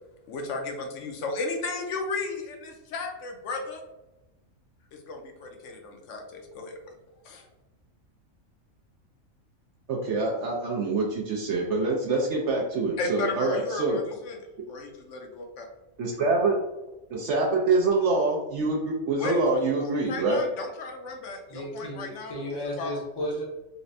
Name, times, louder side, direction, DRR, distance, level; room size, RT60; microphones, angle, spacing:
voice 1, 0.3-3.8 4.9-6.9 7.2-7.5 13.0-15.7 19.2-19.4 20.1-22.4 22.8-23.0, left 3 dB, 65° left, 3 dB, 0.9 m, -34 dB
voice 2, 9.9-14.0 16.0-16.6 17.1-20.4, right 3 dB, 65° right, -1 dB, 0.8 m, -25 dB
voice 3, 21.5-23.4, equal, 25° left, -3 dB, 0.5 m, -33 dB
4.0 x 2.1 x 2.5 m, 0.99 s
omnidirectional pair, 1.4 m